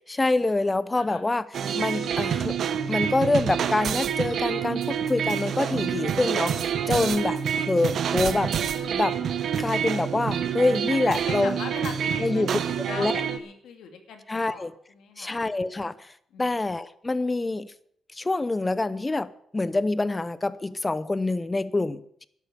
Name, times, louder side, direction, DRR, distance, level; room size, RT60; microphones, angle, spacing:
voice 1, 0.0-1.5 1.7-2.6 2.9-8.5 8.9-9.2 9.6-11.6 12.2-12.6 12.9-13.2 14.3-14.7 15.2-16.1 16.4-17.7 18.1-22.3, left 2 dB, 15° left, 17 dB, 0.7 m, -26 dB
sound 1, 1.5-13.4, right 8 dB, 65° right, 1.0 m, -27 dB
voice 2, 11.1-12.6 12.9-15.5 16.3-16.6, left 6 dB, 85° left, 5 dB, 2.6 m, -40 dB
12.0 x 11.5 x 6.8 m, 0.66 s
cardioid pair, 135°, 0 cm